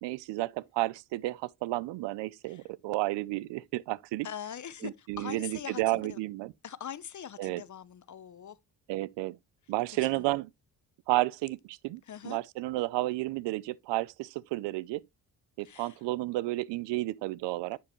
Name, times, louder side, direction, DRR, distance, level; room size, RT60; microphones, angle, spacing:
voice 1, 0.0-4.3 4.8-6.5 7.4-7.6 8.9-9.4 9.7-10.5 11.1-15.0 15.6-17.8, right 19 dB, 85° right, 0.6 m, -32 dB
voice 2, 4.2-6.2 6.6-8.6 10.0-10.3 12.1-12.4 15.6-16.0, left 9 dB, 45° left, 0.8 m, -42 dB
9.5 x 4.8 x 3.0 m
supercardioid pair, 60°, 42 cm